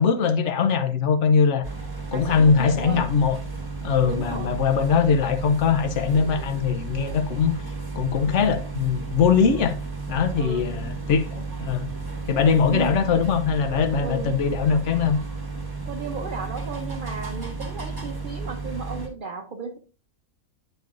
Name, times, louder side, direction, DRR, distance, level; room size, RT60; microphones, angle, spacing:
voice 1, 0.0-1.6 2.1-3.4 3.8-7.5 8.0-9.8 10.1-11.9 12.3-15.2, left 6 dB, 60° left, 1.0 m, -21 dB
sound 1, 1.6-19.1, right 4 dB, 15° right, 1.4 m, -33 dB
voice 2, 2.1-3.2 4.0-4.7 10.4-11.0 12.7-13.1 14.0-14.5 15.9-19.8, right 4 dB, 45° right, 0.7 m, -34 dB
9.1 x 5.3 x 2.5 m
omnidirectional pair, 1.5 m